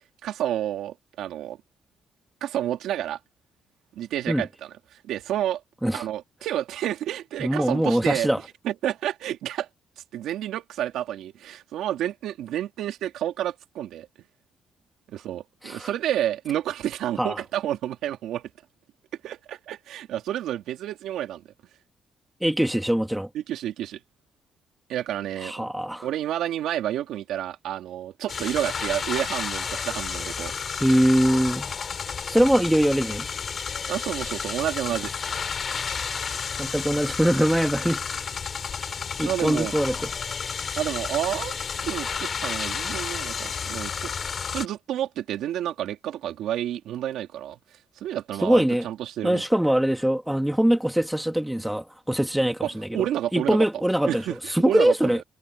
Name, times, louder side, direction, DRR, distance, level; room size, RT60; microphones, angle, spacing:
voice 1, 0.2-1.6 2.4-3.2 4.0-4.7 5.0-5.6 5.9-8.3 8.6-9.7 10.1-14.1 15.1-18.5 19.2-21.4 23.3-24.0 24.9-25.7 26.0-30.5 33.9-35.1 39.2-39.7 40.8-41.6 41.8-44.1 44.5-47.6 48.0-49.4 52.6-53.7 54.0-55.2, right 11 dB, 85° right, 2.9 m, -30 dB
voice 2, 7.4-8.4 15.6-15.9 17.2-17.4 22.4-23.3 25.4-26.1 30.8-31.7 32.3-33.3 36.6-38.3 39.2-40.1 48.4-48.9 49.2-53.0 53.3-55.2, right 1 dB, 5° right, 2.1 m, -23 dB
sound 1, 28.3-44.7, left 6 dB, 45° left, 5.9 m, -31 dB
cardioid pair, 90°, 0 cm